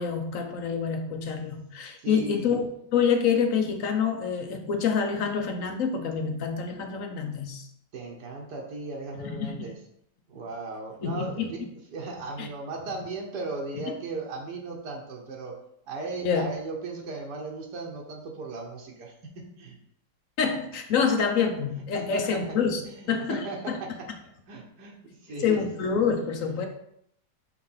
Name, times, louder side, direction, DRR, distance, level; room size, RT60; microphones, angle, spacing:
voice 1, 0.0-2.6 2.9-7.7 9.1-9.7 11.0-11.5 12.4-12.5 16.2-16.5 20.4-22.8 23.1-23.8 25.3-26.7, left 6 dB, 60° left, 5 dB, 1.1 m, -27 dB
voice 2, 2.0-2.5 7.9-9.8 10.3-11.6 11.9-15.5 15.9-19.8 22.0-22.6 22.8-23.9 24.5-25.7, right 3 dB, 85° right, 0 dB, 1.6 m, -37 dB
5.7 x 3.3 x 5.5 m, 0.73 s
omnidirectional pair, 1.7 m